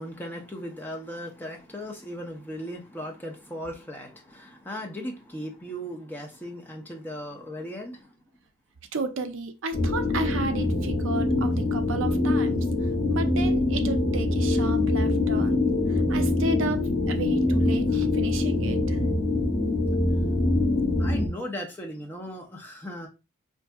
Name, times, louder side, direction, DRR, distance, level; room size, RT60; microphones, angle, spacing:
voice 1, 0.0-8.1 21.0-23.1, equal, 10° left, 0.5 m, -37 dB
voice 2, 8.9-12.6 13.1-15.6 16.1-19.0, right 3 dB, 60° right, 0.5 m, -32 dB
sound 1, 9.7-21.3, left 2 dB, 50° left, 0.9 m, -24 dB
4.5 x 2.6 x 2.2 m
head